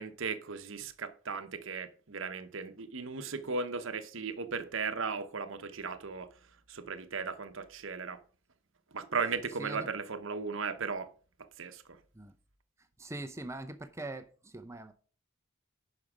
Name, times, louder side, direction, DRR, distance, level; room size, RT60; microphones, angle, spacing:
voice 1, 0.0-6.3 6.7-8.2 8.9-11.1 11.4-12.0, right 5 dB, 60° right, 0.8 m, -36 dB
voice 2, 9.6-9.9 12.1-12.3 13.0-14.9, right 2 dB, 15° right, 0.5 m, -42 dB
11.0 x 5.3 x 4.9 m
head